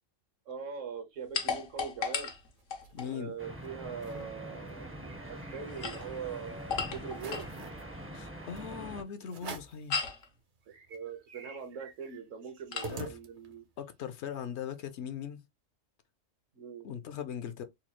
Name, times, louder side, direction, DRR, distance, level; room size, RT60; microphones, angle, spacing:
voice 1, 0.5-2.3 3.1-7.5 10.9-13.6 16.5-16.9, right 6 dB, 75° right, 1.3 m, -42 dB
sound 1, 1.3-3.1 5.6-7.6 9.9-10.3 12.7-13.0, left 5 dB, 90° left, 1.3 m, -36 dB
sound 2, 2.4-3.2 3.6-3.7 3.9-4.3 4.7-6.3 6.7-6.8 7.1-7.8 8.6-8.7 9.3-9.9 10.3-10.4 10.7-13.7, right 3 dB, 50° right, 0.7 m, -47 dB
voice 2, 2.9-3.3 8.1-10.1 12.9-13.2 13.8-15.4 16.8-17.6, left 8 dB, 65° left, 0.8 m, -39 dB
sound 3, 3.4-9.0, right 1 dB, 15° right, 0.4 m, -44 dB
4.0 x 2.3 x 2.9 m
omnidirectional pair, 1.3 m